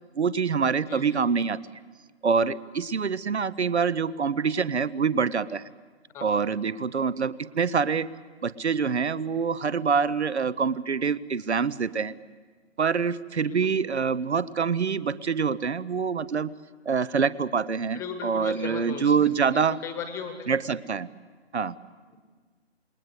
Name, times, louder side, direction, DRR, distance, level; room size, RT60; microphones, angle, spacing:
voice 1, 0.2-1.6 2.2-5.6 6.2-8.1 8.4-12.1 12.8-16.5 16.9-19.8 20.5-21.1 21.5-21.8, right 5 dB, 70° right, 19 dB, 0.9 m, -25 dB
voice 2, 17.9-19.3 19.8-20.6, left 6 dB, 10° left, 8 dB, 1.2 m, -37 dB
27.5 x 20.5 x 8.1 m, 1.5 s
figure-of-eight pair, 150°, 34 cm